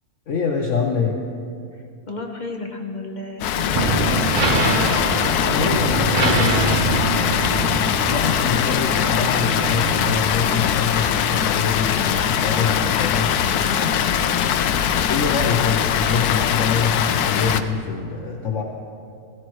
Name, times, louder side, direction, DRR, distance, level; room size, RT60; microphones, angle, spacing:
voice 1, 0.3-1.2 5.4-7.4 7.8-13.3 15.1-18.6, left 5 dB, 60° left, 0 dB, 1.2 m, -25 dB
voice 2, 1.7-4.7 13.2-14.5, left 2 dB, 35° left, 2 dB, 1.0 m, -34 dB
Water, 3.4-17.6, left 9 dB, 85° left, 1.1 m, -21 dB
sound 1, 3.7-10.4, right 4 dB, 45° right, 0.7 m, -25 dB
16.0 x 16.0 x 3.1 m, 2.4 s
omnidirectional pair, 1.6 m